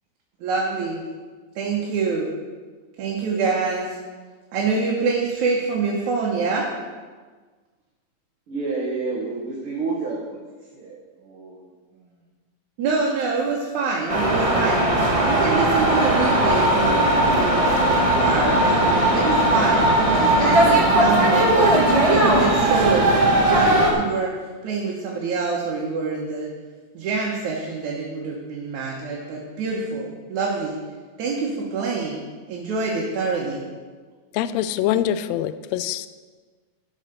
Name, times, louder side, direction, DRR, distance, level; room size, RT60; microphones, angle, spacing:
voice 1, 0.4-1.0 1.6-2.3 3.0-4.0 4.5-6.7 12.8-14.9 15.3-17.7 18.2-24.3 24.6-26.5 26.9-30.8 31.2-33.6, right 4 dB, 80° right, -3 dB, 2.7 m, -26 dB
voice 2, 8.5-12.1 29.0-29.1 32.7-33.0 34.4-34.8, right 3 dB, 50° right, -3 dB, 2.2 m, -31 dB
sound 1, 14.1-23.9, right 1 dB, 35° right, 0.5 m, -18 dB
voice 3, 34.3-36.1, left 11 dB, 80° left, 13 dB, 1.6 m, -24 dB
12.5 x 5.7 x 6.7 m, 1.4 s
omnidirectional pair, 3.3 m